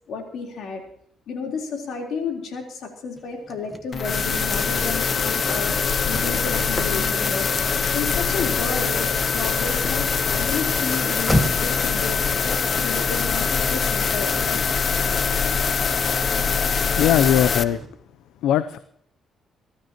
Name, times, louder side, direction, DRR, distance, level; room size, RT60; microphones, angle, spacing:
voice 1, 0.1-0.8 1.3-5.7 6.1-12.2 12.4-14.7, left 5 dB, 70° left, 2 dB, 3.8 m, -32 dB
Car / Slam, 3.2-11.8, equal, 10° left, 1.4 m, -33 dB
sound 1, 3.9-17.6, left 6 dB, 45° left, 0.7 m, -23 dB
sound 2, 4.0-17.9, right 3 dB, 35° right, 3.5 m, -40 dB
voice 2, 17.0-17.8 18.4-18.8, left 11 dB, 85° left, 12 dB, 0.5 m, -19 dB
24.0 x 13.0 x 3.0 m, 0.68 s
cardioid pair, 90°, 0 cm